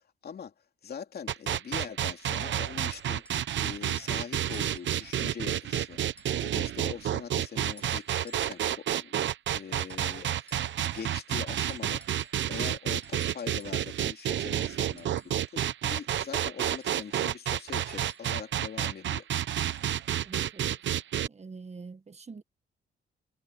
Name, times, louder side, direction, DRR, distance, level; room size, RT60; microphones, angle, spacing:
voice 1, 0.2-0.5 0.8-3.2 3.6-6.0 6.4-9.1 9.5-15.2 15.5-19.3, left 7 dB, 50° left, 3.0 m, -42 dB
sound 1, 1.3-21.3, right 11 dB, 65° right, 0.9 m, -30 dB
sound 2, 2.8-3.4 4.5-5.2 6.2-6.7 7.6-8.7 9.8-11.3 11.6-12.6 13.0-15.6 16.6-18.4 19.6-20.0 20.9-21.0, equal, 5° left, 6.9 m, -55 dB
voice 2, 20.2-20.8 21.3-22.4, right 4 dB, 35° right, 1.7 m, -45 dB
cardioid pair, 105°, 20 cm